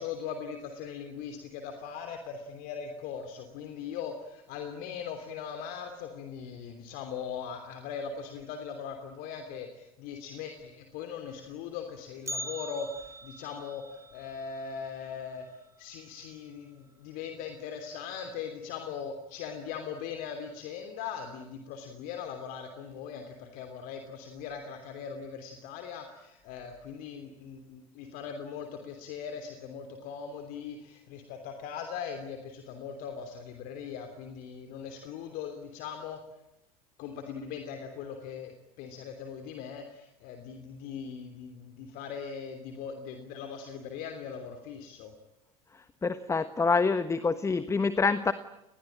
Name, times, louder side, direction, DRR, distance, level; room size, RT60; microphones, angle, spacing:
voice 1, 0.0-15.5 15.8-36.2 37.0-45.1, left 7 dB, 50° left, 6 dB, 3.1 m, -40 dB
Bell, 12.3-16.3 16.6-16.7 17.2-17.3 18.1-18.2 19.0-19.2 19.6-19.7, equal, 15° right, 2.7 m, -43 dB
voice 2, 46.0-48.3, left 4 dB, 15° left, 13 dB, 1.3 m, -26 dB
30.0 x 20.5 x 8.8 m, 0.89 s
figure-of-eight pair, 75°, 18 cm